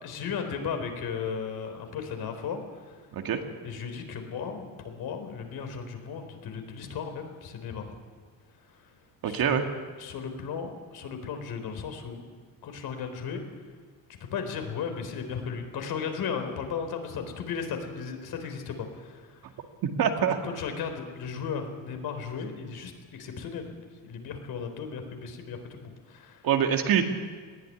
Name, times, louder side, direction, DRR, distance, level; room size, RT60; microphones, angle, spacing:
voice 1, 0.0-3.0 3.6-7.9 8.7-8.8 9.2-9.6 10.0-12.2 12.6-13.4 14.3-19.4 20.2-23.8 24.0-26.5, left 6 dB, 55° left, 5 dB, 4.1 m, -35 dB
voice 2, 9.2-9.6 19.8-20.4 26.4-27.0, right 8 dB, 50° right, 4 dB, 2.2 m, -24 dB
20.0 x 16.0 x 9.8 m, 1.5 s
cardioid pair, 150°, 44 cm